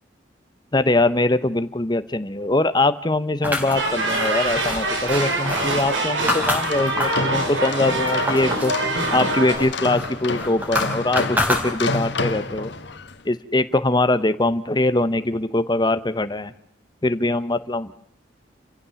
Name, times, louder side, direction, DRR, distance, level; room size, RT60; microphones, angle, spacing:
voice 1, 0.7-8.7 9.1-12.7 13.2-16.5 17.0-17.9, left 2 dB, 25° left, 12 dB, 0.9 m, -22 dB
sound 1, 3.4-7.3 7.7-8.8 9.1-12.1, left 1 dB, 10° right, 4.8 m, -27 dB
sound 2, 3.7-9.5, right 2 dB, 90° right, 5.7 m, -24 dB
sound 3, 6.5-13.2, left 3 dB, 65° left, 1.6 m, -29 dB
29.5 x 15.5 x 7.0 m, 0.76 s
head